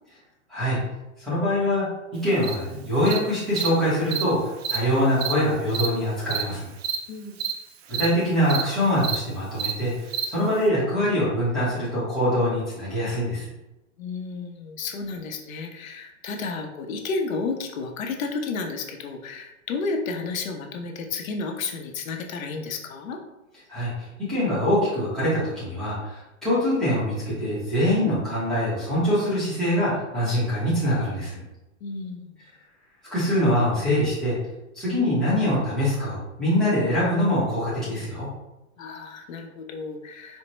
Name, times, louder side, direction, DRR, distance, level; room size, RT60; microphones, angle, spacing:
voice 1, 1.2-1.9 2.1-6.7 8.0-13.5 23.7-23.9 24.3-31.4 33.1-34.4 34.7-38.3, equal, ahead, -12 dB, 0.7 m, -24 dB
Cricket, 2.4-2.5 3.1-3.2 3.6-3.7 4.1-4.2 4.6-4.8 5.2-5.3 5.7-5.9 6.3-6.4 6.8-7.0 7.4-7.5 7.9-8.1 8.5-8.6 9.0-9.2 9.6-9.7 10.1-10.2, right 9 dB, 50° right, 0.4 m, -27 dB
voice 2, 14.0-23.2 31.8-32.3 38.8-40.4, left 4 dB, 85° left, 4 dB, 0.8 m, -32 dB
4.3 x 2.0 x 3.0 m, 0.95 s
supercardioid pair, 170°, 39 cm